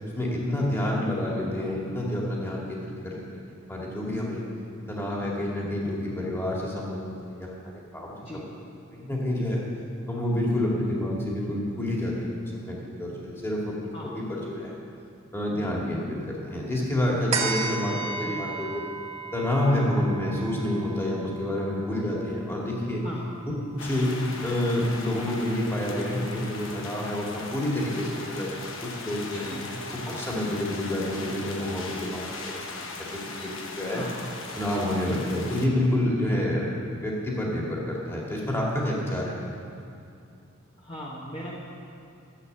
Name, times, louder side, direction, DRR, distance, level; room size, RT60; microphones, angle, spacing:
voice 1, 0.0-3.4 3.7-4.4 4.9-7.5 7.9-8.4 8.9-9.6 10.1-14.7 15.3-18.8 19.3-23.0 23.7-24.1 24.4-29.5 29.9-32.5 33.1-34.0 34.5-39.4, left 1 dB, 10° left, -4 dB, 2.1 m, -28 dB
sound 1, 17.3-24.1 24.5-24.6, right 4 dB, 35° right, 1.6 m, -35 dB
sound 2, 23.8-35.7, left 3 dB, 65° left, 1.1 m, -38 dB
voice 2, 29.2-29.8 33.9-34.2 40.8-41.5, equal, 25° left, -6 dB, 1.3 m, -39 dB
12.5 x 8.2 x 6.7 m, 2.6 s
head